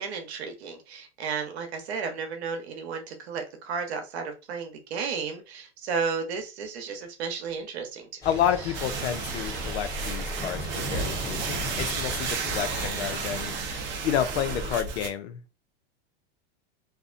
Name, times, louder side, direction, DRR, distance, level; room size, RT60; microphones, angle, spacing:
voice 1, 0.0-8.2 8.6-8.7, right 5 dB, 85° right, 0.9 m, -33 dB
Thunder / Rain, 8.2-13.6, left 1 dB, 10° left, 1.0 m, -37 dB
voice 2, 8.3-15.4, left 10 dB, 85° left, 0.6 m, -30 dB
sound 1, 8.7-15.1, right 5 dB, 35° right, 0.6 m, -32 dB
2.6 x 2.1 x 2.5 m
supercardioid pair, 125°, 32 cm